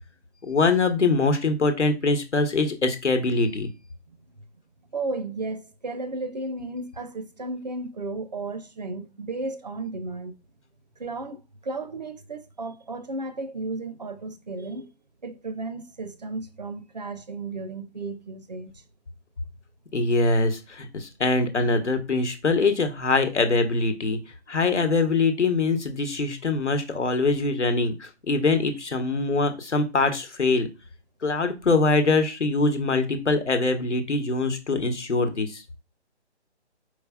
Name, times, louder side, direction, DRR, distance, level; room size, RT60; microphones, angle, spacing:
voice 1, 0.4-3.7 19.9-24.2 24.5-30.7 31.2-35.6, left 3 dB, 85° left, 1.2 m, -23 dB
voice 2, 4.9-10.3 11.0-14.9 15.2-18.8, right 3 dB, 40° right, 0.4 m, -34 dB
4.8 x 4.7 x 2.3 m
figure-of-eight pair, 150°, 34 cm